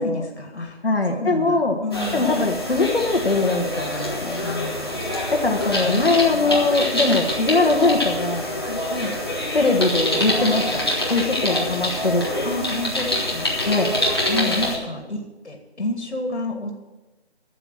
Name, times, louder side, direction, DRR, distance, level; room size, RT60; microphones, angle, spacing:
voice 1, 0.0-0.8 1.1-2.3 4.4-5.0 5.8-6.6 8.9-9.2 12.4-13.5 14.3-16.8, left 2 dB, 85° left, 3 dB, 2.1 m, -30 dB
voice 2, 0.8-1.8 2.1-4.4 5.3-8.8 9.5-10.8 11.1-12.2 13.7-13.9, left 3 dB, 60° left, 2 dB, 1.5 m, -21 dB
sound 1, 1.9-14.8, left 1 dB, 20° left, 1.5 m, -25 dB
11.5 x 7.4 x 7.6 m, 1.1 s
figure-of-eight pair, 180°, 33 cm